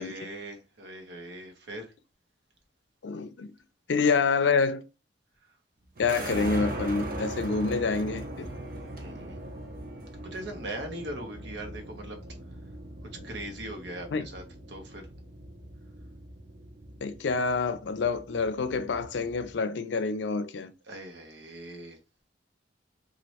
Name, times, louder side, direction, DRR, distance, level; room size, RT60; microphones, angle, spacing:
voice 1, 0.0-1.9 9.0-9.4 10.2-12.2 13.2-15.0 20.9-22.0, right 1 dB, 85° right, 0.9 m, -40 dB
voice 2, 3.0-3.5 3.9-4.8 6.0-8.5 14.1-14.3 17.0-20.7, left 4 dB, 80° left, 0.4 m, -27 dB
sound 1, 6.0-19.5, right 1 dB, 55° right, 0.7 m, -40 dB
3.1 x 2.5 x 2.8 m
head